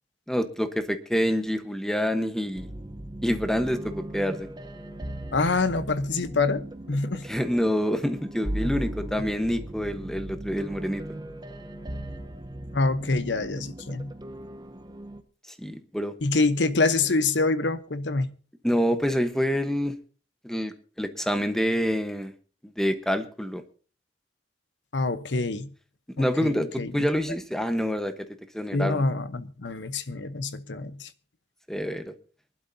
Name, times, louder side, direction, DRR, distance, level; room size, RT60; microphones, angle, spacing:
voice 1, 0.3-2.7 3.2-4.5 7.3-11.0 15.6-16.1 18.6-20.0 20.4-22.3 22.6-23.6 26.2-26.7 26.9-28.1 28.5-29.0 31.7-32.1, equal, 5° left, 1.1 m, -27 dB
sound 1, 2.5-15.2, right 1 dB, 25° right, 0.9 m, -38 dB
voice 2, 5.3-7.3 8.6-8.7 12.7-14.1 16.2-18.3 24.9-25.7 26.2-27.1 28.7-31.1, left 3 dB, 90° left, 0.9 m, -26 dB
24.0 x 12.0 x 2.7 m
head